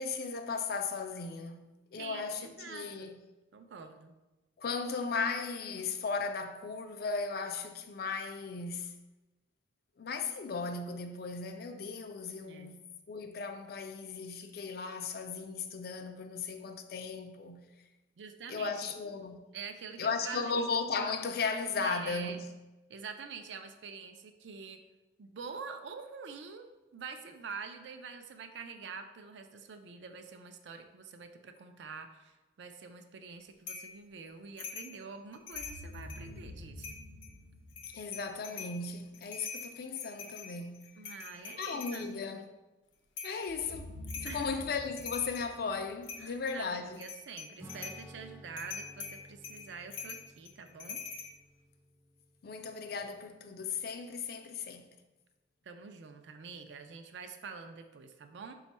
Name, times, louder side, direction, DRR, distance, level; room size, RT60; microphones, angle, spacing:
voice 1, 0.0-3.2 4.6-8.9 10.0-17.6 18.5-19.4 20.0-22.5 37.9-40.9 41.6-42.5 43.2-47.0 52.4-54.9, left 4 dB, 55° left, 0.4 m, -36 dB
voice 2, 2.0-3.1 3.5-4.1 12.4-12.8 18.2-18.9 19.5-20.5 21.8-22.4 22.9-24.8 25.2-37.0 41.0-42.4 44.2-44.6 46.2-51.0 55.6-58.5, right 5 dB, 75° right, 0.4 m, -46 dB
sound 1, 33.7-33.9 34.6-34.9 35.3-36.3 36.8-37.3 37.7-38.8 39.1-42.1 43.2-43.4 44.1-44.4 44.8-45.5 46.0-46.6 46.9-48.0 48.6-51.3, left 5 dB, 85° left, 0.7 m, -44 dB
sound 2, 35.5-38.5 43.5-46.7, left 1 dB, 55° right, 0.8 m, -48 dB
Acoustic guitar / Strum, 47.6-53.5, equal, 15° right, 0.4 m, -55 dB
5.1 x 2.3 x 4.1 m
head